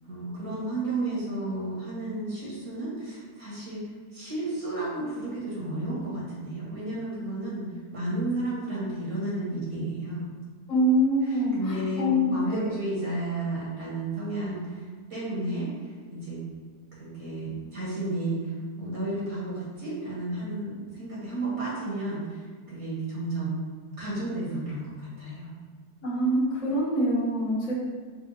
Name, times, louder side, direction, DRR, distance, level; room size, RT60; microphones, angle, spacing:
voice 1, 0.0-3.8 4.1-10.3 11.2-16.4 17.0-23.6 24.0-25.5, right 2 dB, 65° right, -7 dB, 2.1 m, -32 dB
voice 2, 10.7-12.7 26.0-27.7, equal, 25° left, -8 dB, 1.2 m, -25 dB
5.2 x 3.4 x 3.0 m, 1.5 s
omnidirectional pair, 1.7 m